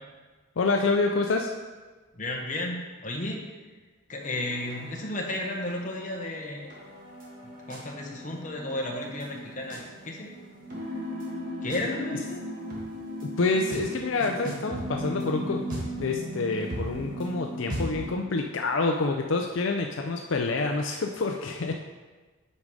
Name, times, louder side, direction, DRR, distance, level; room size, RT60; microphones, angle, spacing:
voice 1, 0.6-1.5 13.4-15.7 16.0-21.7, left 3 dB, 65° left, 3 dB, 0.5 m, -27 dB
voice 2, 2.1-3.4 4.1-6.7 7.7-10.3 11.6-12.5, left 1 dB, 35° left, 0 dB, 1.1 m, -33 dB
sound 1, 4.2-18.1, equal, 40° right, 1.8 m, -37 dB
8.3 x 5.3 x 4.9 m, 1.3 s
head